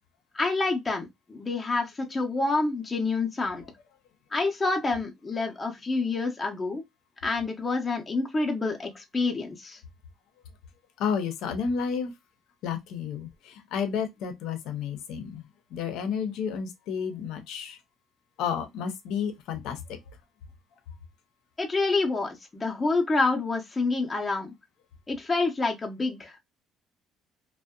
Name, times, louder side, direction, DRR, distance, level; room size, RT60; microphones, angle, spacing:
voice 1, 0.3-3.6 4.3-6.8 7.2-9.8 21.6-24.5 25.1-26.4, left 3 dB, 20° left, 0.6 m, -27 dB
voice 2, 11.0-12.1 12.6-15.4 15.7-17.8 18.4-20.0, left 6 dB, 80° left, 0.6 m, -31 dB
2.6 x 2.1 x 2.2 m
cardioid pair, 120°, 0 cm